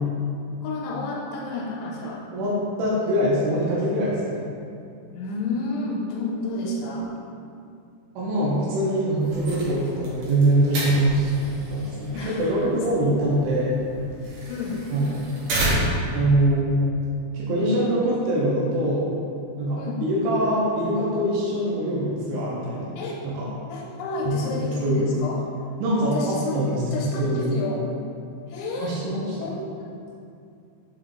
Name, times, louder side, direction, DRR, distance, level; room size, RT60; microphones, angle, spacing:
voice 1, 0.6-2.2 5.1-7.1 12.1-12.7 14.5-14.9 19.8-20.0 23.0-23.2 23.7-25.4 26.1-27.9 28.5-29.0 29.4-30.0, left 3 dB, 90° left, -3 dB, 3.1 m, -31 dB
voice 2, 2.8-4.4 8.2-11.3 11.7-13.7 14.9-15.1 16.1-16.7 17.3-19.1 19.6-23.0 23.2-23.5 24.3-25.1 25.8-27.6 28.8-29.5, right 1 dB, 85° right, -6 dB, 3.3 m, -23 dB
sound 1, 9.2-16.2, right 1 dB, 70° right, 2.1 m, -31 dB
7.2 x 3.4 x 3.8 m, 2.5 s
omnidirectional pair, 5.3 m